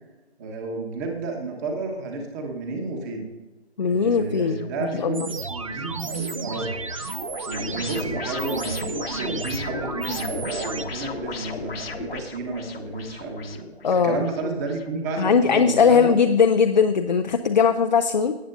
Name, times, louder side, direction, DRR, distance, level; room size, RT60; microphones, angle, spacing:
voice 1, 0.4-3.3 3.8-5.2 5.5-6.7 7.5-16.2, right 3 dB, 15° right, 3 dB, 1.3 m, -31 dB
voice 2, 3.8-4.7 5.0-5.3 13.8-14.2 15.2-18.4, left 6 dB, 45° left, 7 dB, 0.6 m, -19 dB
sound 1, 4.1-15.6, left 4 dB, 60° left, 1.3 m, -37 dB
sound 2, 5.1-10.9, right 4 dB, 30° right, 0.5 m, -32 dB
18.0 x 8.6 x 2.6 m, 1.2 s
figure-of-eight pair, 150°, 33 cm